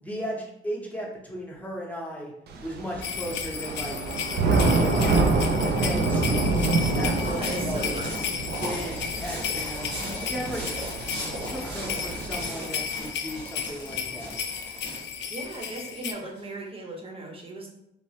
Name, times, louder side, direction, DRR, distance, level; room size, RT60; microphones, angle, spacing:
voice 1, 0.0-2.3 2.6-4.0 4.4-6.7 7.0-8.0 8.6-10.6 11.4-14.3, equal, 5° left, -2 dB, 0.8 m, -36 dB
Thunder / Rain, 2.5-12.4, right 3 dB, 55° right, 0.4 m, -27 dB
sound 1, 3.0-16.1, left 7 dB, 65° left, 0.4 m, -34 dB
sound 2, 6.1-16.4, right 1 dB, 75° right, 1.4 m, -38 dB
voice 2, 7.2-8.3 15.3-17.7, right 2 dB, 30° right, 0 dB, 0.8 m, -37 dB
3.1 x 2.0 x 2.8 m, 0.80 s
cardioid pair, 90°, 20 cm